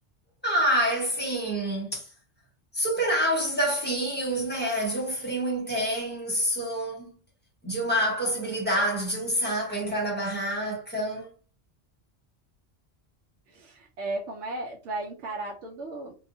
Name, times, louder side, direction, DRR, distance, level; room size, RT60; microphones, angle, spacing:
voice 1, 0.4-2.1 2.7-7.2 7.6-11.3, right 1 dB, 10° left, 1.0 m, -27 dB
voice 2, 13.5-16.2, right 2 dB, 80° right, 0.9 m, -35 dB
2.7 x 2.3 x 2.5 m
omnidirectional pair, 1.2 m